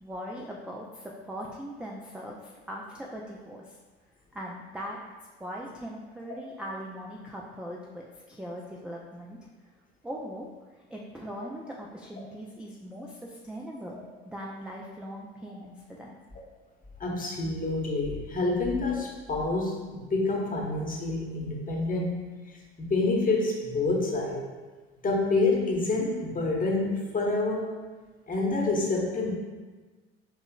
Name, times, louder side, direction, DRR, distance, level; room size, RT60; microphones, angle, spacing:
voice 1, 0.0-3.8 4.3-5.0 5.4-9.4 10.0-10.5 10.9-16.1, equal, 5° right, -3 dB, 0.4 m, -40 dB
voice 2, 17.0-22.2 22.5-24.4 25.0-27.7 28.3-29.3, left 3 dB, 25° left, -1 dB, 1.0 m, -27 dB
6.0 x 3.0 x 2.3 m, 1.3 s
figure-of-eight pair, 55°, 31 cm